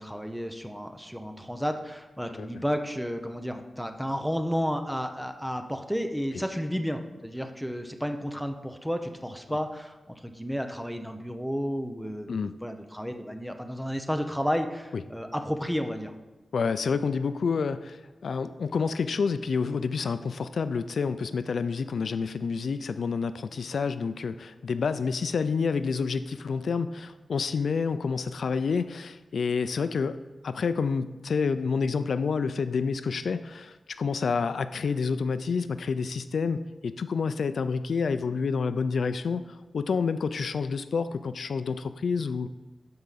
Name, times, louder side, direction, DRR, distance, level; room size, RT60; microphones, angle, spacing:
voice 1, 0.0-16.1, equal, ahead, 6 dB, 0.6 m, -32 dB
voice 2, 16.5-30.2 30.4-42.5, left 5 dB, 75° left, 12 dB, 0.3 m, -28 dB
12.0 x 4.7 x 4.0 m, 1.2 s
wide cardioid pair, 165°, 0 cm